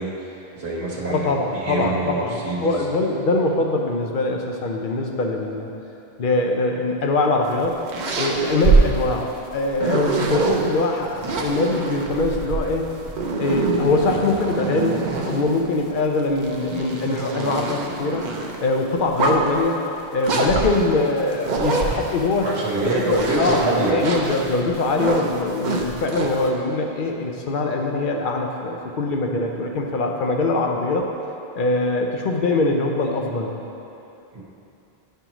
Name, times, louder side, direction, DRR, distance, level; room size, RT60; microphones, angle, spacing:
voice 1, 0.0-2.7 22.4-24.0 34.3-34.4, right 2 dB, 80° right, -5 dB, 1.4 m, -26 dB
voice 2, 1.0-5.7 6.2-7.8 8.2-12.9 13.3-15.0 15.3-18.2 18.6-19.8 20.1-22.5 22.8-31.1 31.5-33.6, left 2 dB, 60° left, 2 dB, 0.8 m, -23 dB
sound 1, 7.5-10.6 11.2-15.6 16.2-18.6 19.0-19.6 20.3-22.4 22.8-26.5, right 4 dB, 50° right, 0.7 m, -25 dB
9.8 x 5.6 x 3.0 m, 2.9 s
omnidirectional pair, 1.1 m